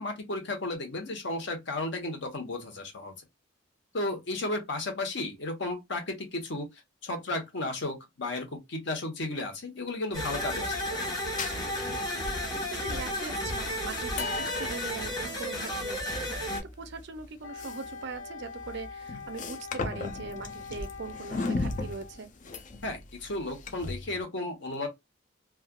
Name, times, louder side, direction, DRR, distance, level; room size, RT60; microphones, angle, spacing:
voice 1, 0.0-3.1 3.9-6.7 7.0-11.0 22.8-24.9, left 2 dB, 65° left, 1.1 m, -34 dB
sound 1, 10.1-24.2, left 3 dB, 40° left, 0.4 m, -38 dB
sound 2, 10.1-16.6, left 1 dB, 20° left, 1.3 m, -33 dB
voice 2, 11.8-22.3, right 4 dB, 60° right, 0.5 m, -41 dB
Wind instrument woodwind instrument, 17.4-22.2, left 5 dB, 90° left, 0.5 m, -43 dB
3.3 x 2.3 x 2.3 m
head